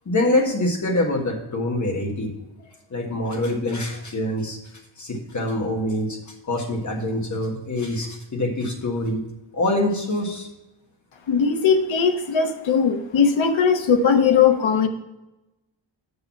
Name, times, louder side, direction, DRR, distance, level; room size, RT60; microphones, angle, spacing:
voice 1, 0.0-2.3 2.9-4.6 5.0-6.2 6.4-9.2 9.5-10.5, left 1 dB, 35° left, 1 dB, 1.6 m, -25 dB
voice 2, 11.3-14.9, left 6 dB, 65° left, 6 dB, 1.1 m, -19 dB
6.9 x 6.7 x 5.8 m, 0.97 s
wide cardioid pair, 175°, 48 cm